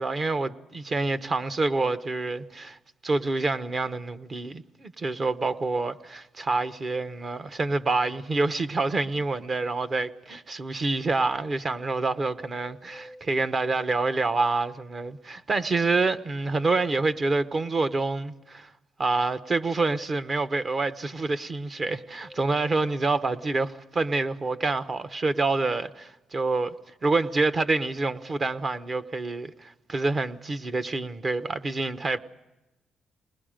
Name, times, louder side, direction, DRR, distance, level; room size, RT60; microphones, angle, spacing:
voice 1, 0.0-2.8 3.0-18.7 19.0-26.7 27.0-32.2, right 3 dB, 40° right, 1.0 m, -27 dB
sound 1, 12.8-14.0 16.6-18.0 22.2-23.6 28.2-29.5, equal, 60° right, 7.2 m, -51 dB
29.0 x 20.5 x 5.1 m
cardioid pair, 90°, 0 cm